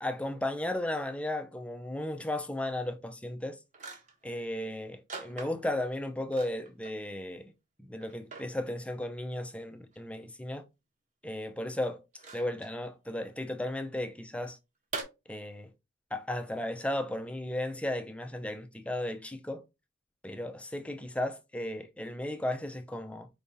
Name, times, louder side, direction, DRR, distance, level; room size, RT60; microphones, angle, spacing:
voice 1, 0.0-3.6 4.2-7.5 7.8-10.7 11.2-12.0 12.3-14.6 15.3-15.7 16.1-19.6 20.2-23.3, left 1 dB, 5° left, 0.5 m, -35 dB
sound 1, 3.2-3.3 3.7-4.3 5.1-5.8 6.3-7.0 7.4-7.5 8.0-8.5 9.9-10.0 12.1-12.7 14.9-15.0, right 4 dB, 40° right, 1.1 m, -42 dB
4.7 x 3.4 x 2.6 m
head